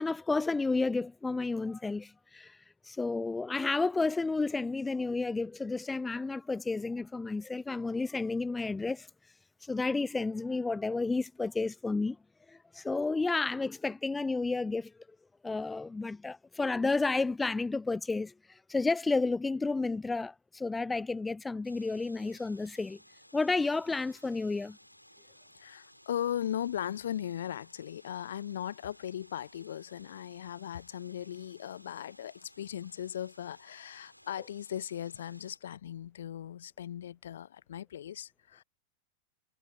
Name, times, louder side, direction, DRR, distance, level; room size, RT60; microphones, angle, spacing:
voice 1, 0.0-2.6 2.8-9.1 9.6-12.2 12.5-14.9 15.4-23.0 23.3-24.8, left 3 dB, 10° left, 0.4 m, -31 dB
sound 1, 21.6-35.6, equal, 90° left, 5.7 m, -59 dB
voice 2, 25.6-38.6, left 10 dB, 60° left, 0.8 m, -38 dB
figure-of-eight pair, 90°, 0 cm